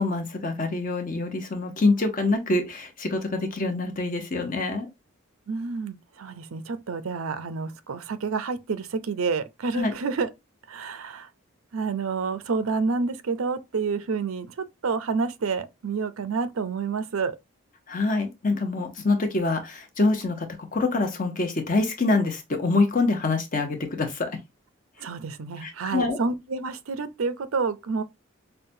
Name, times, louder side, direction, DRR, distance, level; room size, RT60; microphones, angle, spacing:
voice 1, 0.0-4.9 9.7-9.9 17.9-20.5 20.7-24.3 25.6-26.2, left 3 dB, 40° left, 0.8 m, -25 dB
voice 2, 5.5-10.3 10.7-11.3 11.7-17.4 25.0-28.0, right 4 dB, 80° right, 0.5 m, -29 dB
5.5 x 2.2 x 2.6 m
head